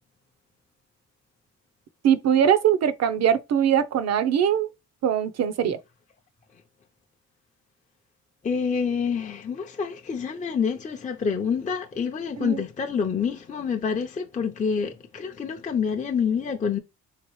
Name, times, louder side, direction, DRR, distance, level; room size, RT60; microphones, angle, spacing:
voice 1, 2.0-4.7 5.0-5.8 12.4-12.6, right 9 dB, 60° right, 0.7 m, -21 dB
voice 2, 8.4-16.8, left 6 dB, 25° left, 0.5 m, -27 dB
3.8 x 2.9 x 3.1 m
cardioid pair, 90°, 30 cm